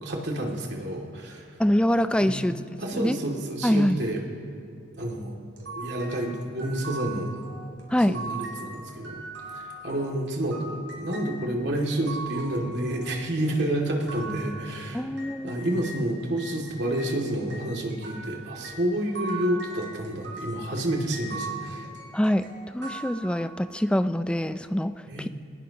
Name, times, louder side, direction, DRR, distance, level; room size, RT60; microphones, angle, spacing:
voice 1, 0.0-1.5 2.2-2.4 2.8-4.2 5.0-5.4 5.8-7.3 8.1-9.2 9.5-15.1 15.4-21.9 25.1-25.3, right 1 dB, 65° right, -1 dB, 2.4 m, -29 dB
voice 2, 1.6-2.6 2.9-3.2 3.6-4.0 7.9-8.2 14.9-15.6 22.1-22.5 22.7-25.3, equal, 5° left, 11 dB, 0.4 m, -24 dB
sound 1, 5.6-16.0 16.4-23.7, right 3 dB, 85° right, 3.6 m, -40 dB
23.5 x 20.0 x 3.0 m, 2.4 s
head